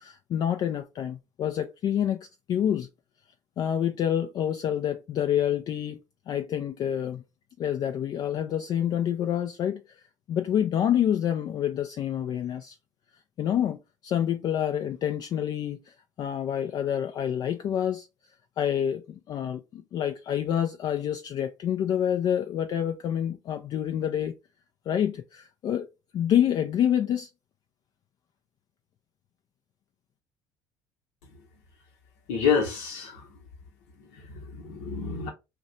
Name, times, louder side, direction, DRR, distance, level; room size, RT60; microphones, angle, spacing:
voice 1, 0.0-2.9 3.6-6.0 6.3-7.2 7.6-9.8 10.3-12.8 13.4-18.1 18.6-24.3 24.9-25.9 26.1-27.3, left 10 dB, 50° left, 0.4 m, -27 dB
voice 2, 32.3-33.3 34.1-35.3, left 6 dB, 75° left, 0.9 m, -28 dB
2.5 x 2.2 x 3.9 m
hypercardioid pair, 70°, 9 cm